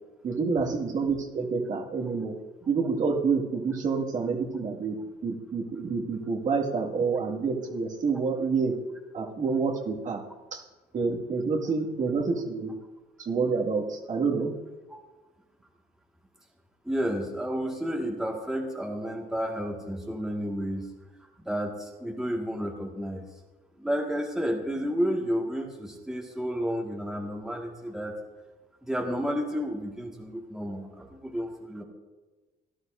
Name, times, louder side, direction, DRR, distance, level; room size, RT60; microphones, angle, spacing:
voice 1, 0.2-2.3 2.7-8.7 9.1-10.2 10.5-10.6 10.9-12.7 13.2-14.5, right 4 dB, 50° right, -1 dB, 2.1 m, -28 dB
voice 2, 16.9-20.9 21.4-23.2 23.8-28.1 28.8-31.8, equal, 5° right, -1 dB, 1.8 m, -31 dB
17.0 x 11.5 x 2.7 m, 1.2 s
cardioid pair, 110°, 17 cm